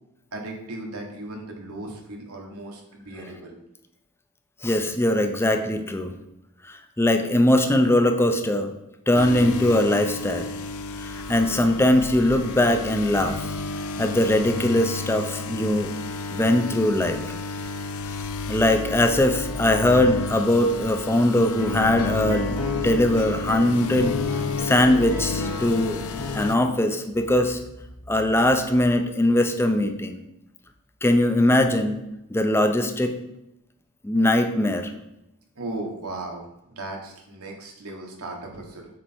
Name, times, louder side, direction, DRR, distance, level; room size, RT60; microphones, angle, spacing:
voice 1, 0.3-3.6 35.5-38.9, right 2 dB, 85° right, 1 dB, 1.4 m, -36 dB
voice 2, 4.6-6.1 6.7-8.7 9.1-10.5 11.0-13.4 14.0-15.9 16.3-17.2 18.5-22.6 22.8-24.2 24.6-26.0 26.3-27.6 28.1-30.2 31.0-32.0 32.3-33.1 34.0-34.9, left 1 dB, 10° left, 6 dB, 0.5 m, -21 dB
sound 1, 9.1-26.5, left 3 dB, 65° left, 0.5 m, -32 dB
sound 2, 21.6-26.6, left 4 dB, 90° left, 1.1 m, -31 dB
7.5 x 3.3 x 4.4 m, 0.85 s
head